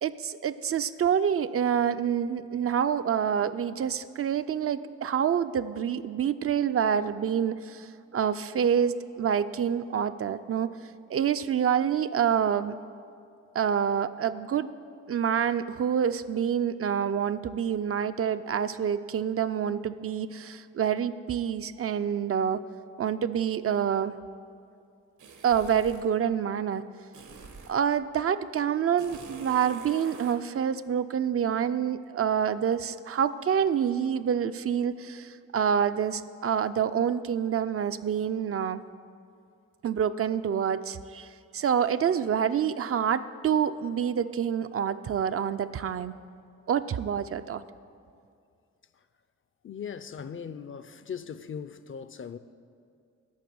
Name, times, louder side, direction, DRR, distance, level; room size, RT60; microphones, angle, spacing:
voice 1, 0.0-10.7 11.1-12.8 13.5-14.7 15.1-22.6 23.0-24.1 25.4-26.8 27.7-38.8 39.8-41.3 41.5-46.1 46.7-47.6, right 8 dB, 50° right, 0.4 m, -27 dB
sound 1, 25.2-26.1 27.1-27.9 29.0-30.4, right 4 dB, 85° right, 1.5 m, -45 dB
voice 2, 49.6-52.4, left 7 dB, 45° left, 0.5 m, -39 dB
12.0 x 6.7 x 9.3 m
wide cardioid pair, 150°, 29 cm